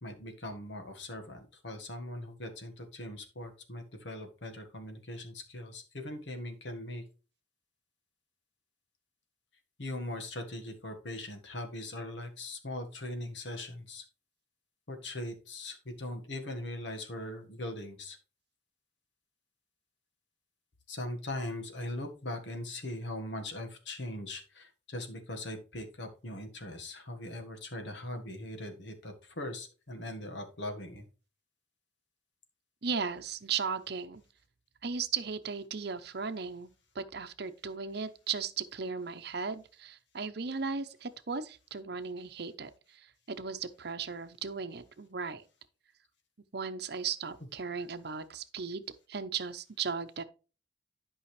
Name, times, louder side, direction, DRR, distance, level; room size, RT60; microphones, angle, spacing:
voice 1, 0.0-7.0 9.8-14.0 14.9-18.2 20.9-31.0, left 1 dB, 70° left, 1.6 m, -40 dB
voice 2, 32.8-34.2 34.8-45.4 46.5-48.8 49.1-50.2, right 5 dB, 60° right, 0.8 m, -36 dB
11.5 x 5.5 x 3.3 m
head